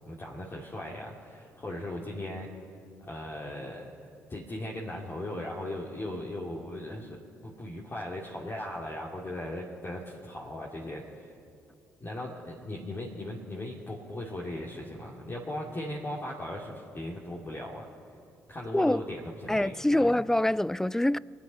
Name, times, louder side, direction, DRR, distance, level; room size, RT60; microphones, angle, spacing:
voice 1, 0.0-2.5 3.0-7.2 7.4-11.3 12.0-17.9 18.5-20.2, left 1 dB, 35° left, 2.4 m, -38 dB
voice 2, 18.7-19.0 19.5-21.2, left 1 dB, 5° left, 0.3 m, -25 dB
24.0 x 9.3 x 5.6 m
hypercardioid pair, 50°, 7 cm